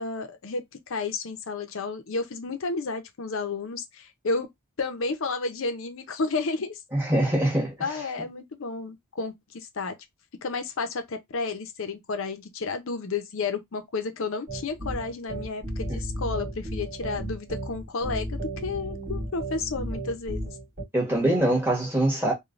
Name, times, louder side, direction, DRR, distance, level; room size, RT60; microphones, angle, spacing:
voice 1, 0.0-4.5 4.8-6.8 7.8-9.9 10.4-20.6, left 4 dB, 65° left, 0.6 m, -31 dB
voice 2, 6.9-7.7 20.9-22.3, right 1 dB, 10° right, 1.2 m, -23 dB
sound 1, 14.5-20.8, right 1 dB, 40° right, 1.3 m, -34 dB
3.1 x 2.2 x 2.5 m
head